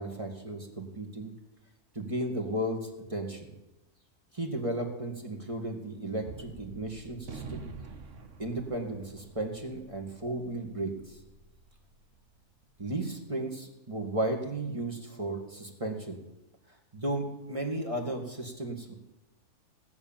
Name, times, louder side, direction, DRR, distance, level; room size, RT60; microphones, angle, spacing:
voice 1, 0.0-1.3 1.9-3.5 4.3-7.7 8.4-11.2 12.8-16.2 16.9-18.9, right 1 dB, 20° right, 1 dB, 1.9 m, -34 dB
Gunshot gunfire, 6.2-12.8, right 4 dB, 55° right, 1.4 m, -47 dB
17.0 x 7.1 x 8.9 m, 0.97 s
omnidirectional pair, 1.6 m